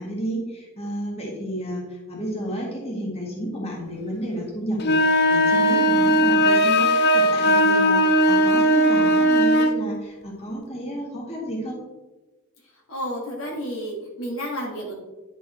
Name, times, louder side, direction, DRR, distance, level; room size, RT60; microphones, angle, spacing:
voice 1, 0.0-11.8, right 1 dB, 30° left, -3 dB, 1.8 m, -31 dB
sound 1, 4.8-9.8, equal, 50° left, 0.5 m, -18 dB
voice 2, 12.9-14.9, equal, 70° left, -1 dB, 1.9 m, -31 dB
10.5 x 5.4 x 3.1 m, 1.2 s
head